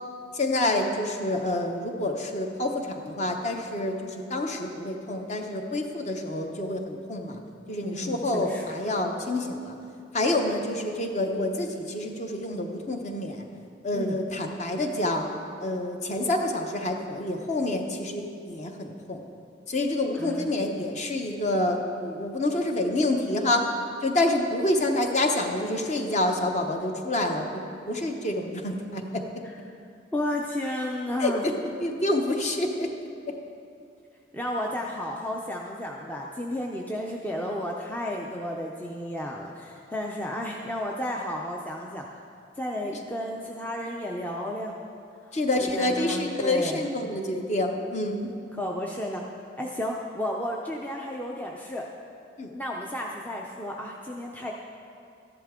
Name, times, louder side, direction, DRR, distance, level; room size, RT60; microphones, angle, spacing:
voice 1, 0.3-7.4 7.7-9.8 10.1-13.5 13.8-15.3 15.6-19.2 19.7-23.8 24.0-29.3 31.2-32.9 45.3-48.3 52.4-52.5, left 1 dB, 35° left, 3 dB, 0.8 m, -27 dB
voice 2, 7.8-8.6 13.9-14.2 20.2-20.5 30.1-31.5 34.3-42.0 42.6-44.8 45.2-46.8 48.6-49.2 49.6-51.9 52.5-54.5, left 1 dB, 10° left, -1 dB, 0.5 m, -32 dB
13.5 x 11.0 x 3.7 m, 2.5 s
head